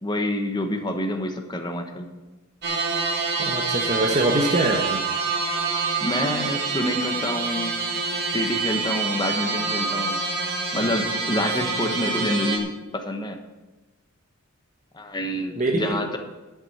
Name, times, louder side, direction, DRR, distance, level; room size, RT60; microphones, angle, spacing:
voice 1, 0.0-2.1 6.0-7.8 8.3-10.2 10.7-13.4 14.9-16.2, left 1 dB, 20° left, 5 dB, 1.2 m, -27 dB
sound 1, 2.6-12.6, right 4 dB, 50° right, 2.1 m, -26 dB
voice 2, 3.4-5.1 15.6-16.1, right 1 dB, 35° right, 0 dB, 1.1 m, -23 dB
11.0 x 7.5 x 6.6 m, 1.1 s
head